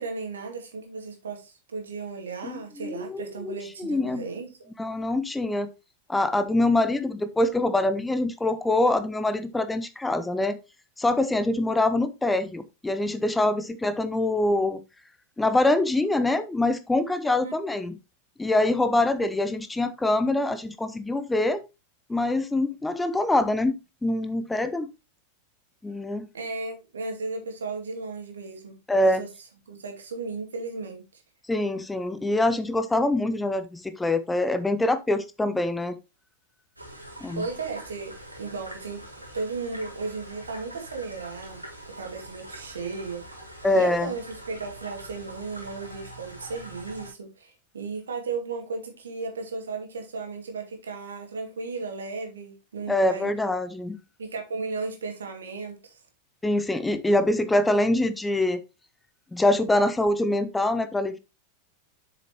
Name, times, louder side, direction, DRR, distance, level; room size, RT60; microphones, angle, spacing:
voice 1, 0.0-4.7 17.4-17.5 26.3-28.8 29.2-29.3 29.7-31.2 37.4-39.0 39.3-43.2 43.7-53.3 54.2-56.0, right 4 dB, 70° right, 2.3 m, -35 dB
voice 2, 2.4-4.2 4.8-5.7 6.1-10.6 11.0-14.8 15.4-17.9 18.4-21.6 22.1-24.9 25.8-26.3 28.9-29.2 31.5-36.0 37.2-37.5 43.6-44.1 52.9-54.0 56.4-58.6 59.3-61.2, left 2 dB, 10° left, 0.6 m, -24 dB
sound 1, 36.8-47.1, right 1 dB, 85° right, 2.2 m, -43 dB
7.6 x 6.8 x 3.0 m
figure-of-eight pair, 90°, 0 cm